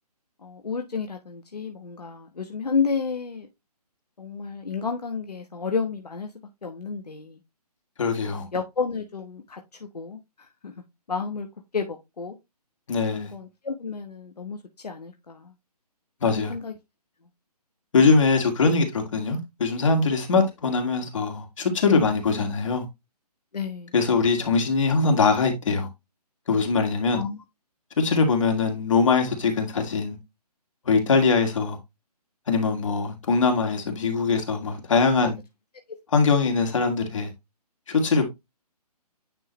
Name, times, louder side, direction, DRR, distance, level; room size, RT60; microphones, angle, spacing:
voice 1, 0.4-3.5 4.2-6.3 6.6-7.4 8.2-9.6 9.9-10.7 11.1-11.5 11.7-12.4 13.1-15.5 16.3-16.7 21.9-22.1 23.5-23.9 27.1-27.4 35.2-35.3 36.4-36.5, left 5 dB, 70° left, 1.2 m, -31 dB
voice 2, 8.0-8.4 12.9-13.3 16.2-16.5 17.9-22.9 23.9-25.9 26.5-27.2 28.0-30.2 30.9-31.8 32.5-35.4 36.1-37.3 37.9-38.3, left 4 dB, 50° left, 2.2 m, -22 dB
9.9 x 3.8 x 3.1 m
figure-of-eight pair, 145°, 21 cm